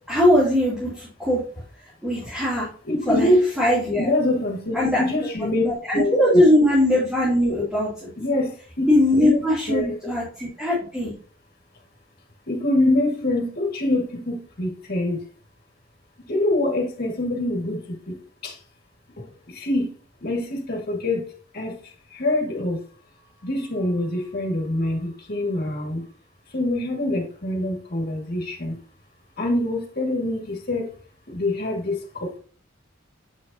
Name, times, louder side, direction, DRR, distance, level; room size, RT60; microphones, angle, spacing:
voice 1, 0.1-1.4 2.0-2.7 3.1-4.1 4.7-5.0 5.4-8.1 8.9-11.1, left 1 dB, 5° right, -9 dB, 2.7 m, -20 dB
voice 2, 2.8-3.4 4.0-5.6 5.9-6.1 8.2-8.9 9.1-10.0 12.5-15.2 16.3-18.2 18.4-18.6 19.5-19.9 20.2-21.2 21.5-21.8 22.1-22.8 23.4-26.0 26.5-28.8 29.4-30.9 31.3-32.4, left 1 dB, 50° left, 1 dB, 2.0 m, -25 dB
7.4 x 6.4 x 2.8 m, 0.43 s
head